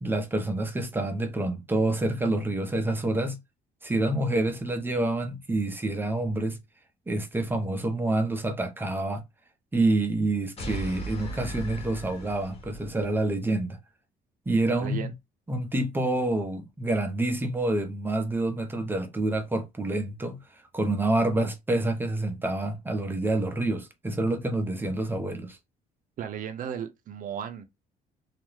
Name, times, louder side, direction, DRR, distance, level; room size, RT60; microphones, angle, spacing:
voice 1, 0.0-3.4 3.8-6.6 7.1-9.2 9.7-13.8 14.5-15.1 15.5-20.4 20.7-25.6, right 2 dB, 10° right, 0.6 m, -27 dB
sound 1, 10.6-13.1, right 1 dB, 35° left, 1.1 m, -37 dB
voice 2, 14.8-15.1 26.2-27.7, right 8 dB, 55° right, 0.6 m, -35 dB
2.4 x 2.1 x 3.1 m
cardioid pair, 110°, 17 cm